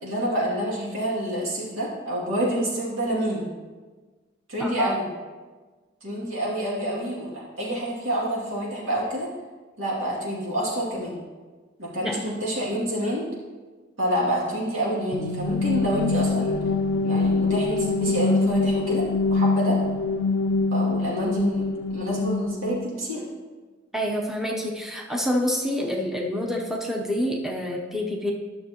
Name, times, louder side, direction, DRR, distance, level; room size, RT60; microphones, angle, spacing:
voice 1, 0.0-3.5 4.5-5.0 6.0-9.3 9.8-11.1 11.8-13.3 14.0-16.6 17.0-19.8 20.7-23.2, equal, 90° right, -6 dB, 2.5 m, -27 dB
voice 2, 4.6-4.9 12.0-12.2 23.9-28.3, equal, ahead, -1 dB, 0.7 m, -27 dB
sound 1, 15.1-22.9, left 3 dB, 70° left, 0.4 m, -24 dB
11.5 x 6.5 x 2.9 m, 1.3 s
head